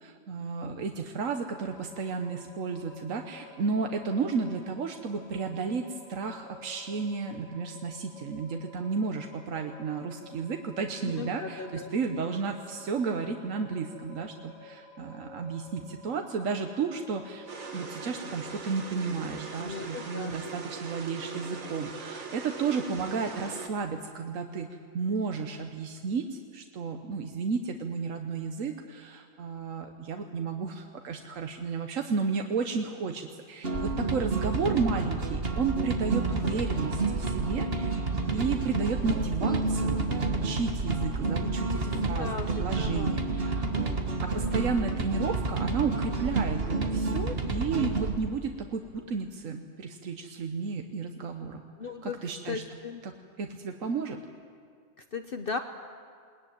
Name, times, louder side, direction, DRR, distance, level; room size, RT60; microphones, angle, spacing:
voice 1, 0.0-38.0 38.3-40.0 40.3-43.6 44.2-51.6 52.0-52.6 53.0-53.1 53.4-54.2, right 5 dB, 80° right, 5 dB, 1.4 m, -33 dB
sound 1, 1.3-18.3, left 2 dB, 65° left, 6.6 m, -51 dB
voice 2, 11.0-11.9 19.6-20.5 41.6-43.1 51.8-52.2 52.5-53.0 55.1-55.6, left 4 dB, 50° left, 7 dB, 1.0 m, -36 dB
sound 2, 17.5-23.7, right 4 dB, 65° right, 1.9 m, -40 dB
sound 3, 33.6-48.2, right 3 dB, 50° right, 1.8 m, -29 dB
21.5 x 19.5 x 9.3 m, 2.1 s
omnidirectional pair, 1.3 m